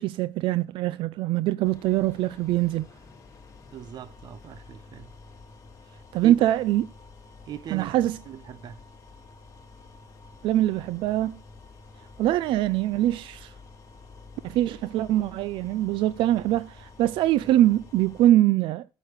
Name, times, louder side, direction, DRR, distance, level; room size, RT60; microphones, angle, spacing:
voice 1, 0.0-2.9 6.1-6.9 7.7-8.2 10.4-11.4 12.2-13.5 14.4-18.9, right 14 dB, 80° right, 0.5 m, -23 dB
sound 1, 1.6-18.3, left 3 dB, 35° left, 4.0 m, -49 dB
voice 2, 3.7-5.1 6.2-6.3 7.5-7.9 8.3-8.8, right 9 dB, 55° right, 0.8 m, -40 dB
8.8 x 6.4 x 8.2 m
cardioid pair, 120°, 9 cm